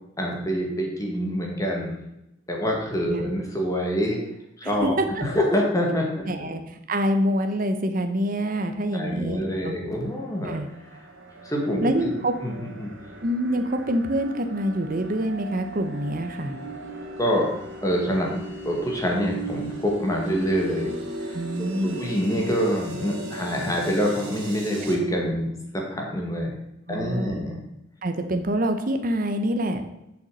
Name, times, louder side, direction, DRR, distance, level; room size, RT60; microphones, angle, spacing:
voice 1, 0.2-2.0 2.5-4.2 4.6-4.9 5.2-6.5 8.9-10.6 11.4-12.1 12.4-13.0 17.2-17.5 17.8-18.3 18.6-20.9 21.2-21.4 21.8-26.5 26.9-27.6, equal, 15° left, 0 dB, 1.7 m, -26 dB
voice 2, 4.6-5.2 6.3-9.8 10.4-10.7 11.8-12.3 13.2-16.6 21.3-22.0 26.9-27.4 28.0-29.8, right 1 dB, 45° right, 7 dB, 0.8 m, -26 dB
sound 1, 10.0-25.0, right 1 dB, 80° right, 2.1 m, -38 dB
7.1 x 6.7 x 6.3 m, 0.87 s
head